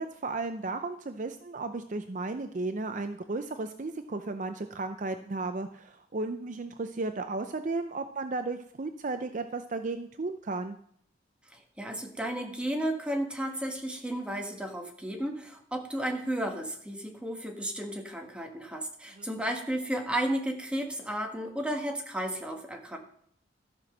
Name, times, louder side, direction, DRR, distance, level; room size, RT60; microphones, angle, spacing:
voice 1, 0.0-10.8 19.1-19.3, right 3 dB, 45° right, 8 dB, 0.5 m, -34 dB
voice 2, 11.5-23.0, right 1 dB, 5° right, 2 dB, 1.5 m, -33 dB
13.5 x 6.0 x 6.0 m, 0.64 s
head